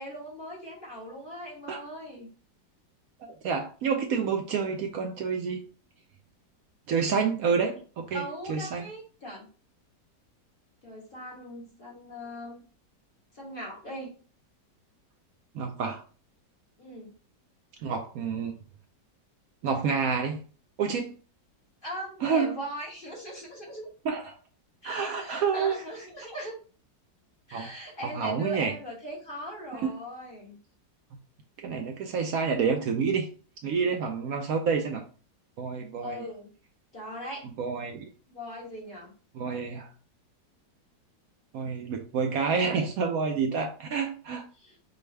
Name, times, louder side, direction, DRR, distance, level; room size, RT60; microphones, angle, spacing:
voice 1, 0.0-2.3 7.5-7.8 8.1-9.5 10.8-12.6 13.3-14.1 16.8-17.1 21.8-23.9 24.8-26.5 27.5-30.6 36.0-36.5 36.9-37.5 38.3-39.1 44.5-44.8, equal, 30° left, -4 dB, 1.3 m, -40 dB
voice 2, 3.2-5.6 6.9-7.7 8.1-8.2 8.5-8.8 15.5-16.0 17.8-18.6 19.6-20.4 20.8-21.1 22.2-22.5 24.0-24.4 24.8-25.8 27.5-27.7 28.0-28.7 29.8-30.0 31.6-33.3 33.6-35.0 35.6-36.2 37.6-38.1 39.3-39.9 41.5-44.4, right 5 dB, 75° right, 4 dB, 0.8 m, -28 dB
5.2 x 2.3 x 3.2 m, 0.37 s
omnidirectional pair, 1.9 m